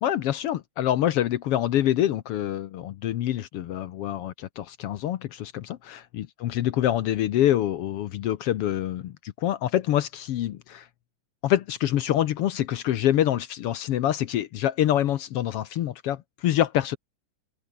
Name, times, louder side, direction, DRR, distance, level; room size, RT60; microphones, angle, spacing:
voice 1, 0.0-10.9 11.4-17.0, left 12 dB, 75° left, 1.4 m, -26 dB
open air
omnidirectional pair, 3.7 m